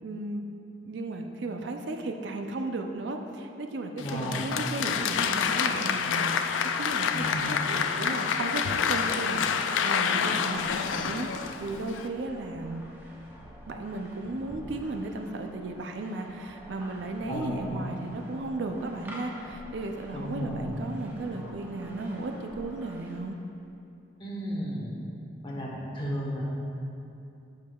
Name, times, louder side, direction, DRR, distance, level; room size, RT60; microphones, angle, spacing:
voice 1, 0.0-0.4 0.8-12.8 13.7-23.4, right 2 dB, 70° right, 4 dB, 0.4 m, -35 dB
Applause, 4.0-12.1, left 7 dB, 85° left, 0.3 m, -28 dB
voice 2, 4.0-4.4 7.1-7.5 17.2-17.8 20.1-20.8 24.2-24.9 25.4-26.4, equal, 25° left, -4 dB, 1.0 m, -34 dB
sound 1, 10.5-23.2, equal, 10° right, 0.7 m, -48 dB
8.2 x 6.8 x 2.3 m, 2.7 s
head